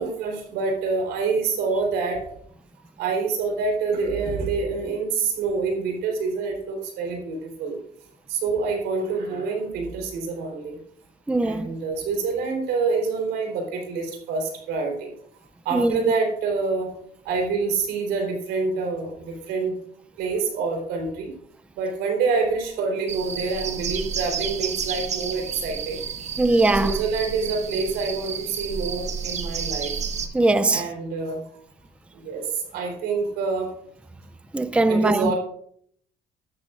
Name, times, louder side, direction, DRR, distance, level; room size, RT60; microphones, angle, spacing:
voice 1, 0.0-2.2 3.0-7.8 8.3-10.8 11.4-15.1 15.7-16.9 17.3-19.7 20.2-21.3 21.8-26.0 26.8-29.9 30.7-31.4 32.2-32.4 32.7-33.7 34.9-35.4, right 4 dB, 90° right, 3.9 m, -26 dB
voice 2, 11.3-11.7 15.7-16.0 26.4-27.0 30.3-30.9 34.5-35.3, right 2 dB, 5° right, 0.5 m, -20 dB
sound 1, 23.1-30.3, right 6 dB, 40° right, 1.2 m, -31 dB
12.5 x 12.5 x 2.5 m
cardioid pair, 110°, 17 cm